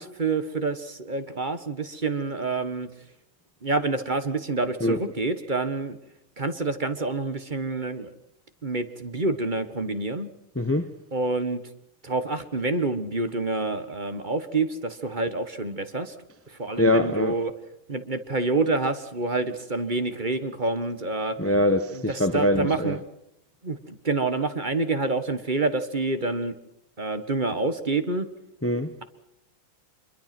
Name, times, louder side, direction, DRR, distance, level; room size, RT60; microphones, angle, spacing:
voice 1, 0.0-2.9 3.6-6.0 6.4-8.1 8.6-10.3 11.1-11.6 12.0-16.1 16.6-17.5 17.9-21.3 21.9-23.0 23.6-26.5 27.0-28.3, right 3 dB, 25° right, 1.3 m, -27 dB
voice 2, 10.6-10.9 16.8-17.4 21.4-23.0 28.6-28.9, left 1 dB, 20° left, 0.4 m, -23 dB
25.5 x 23.0 x 6.0 m
omnidirectional pair, 2.2 m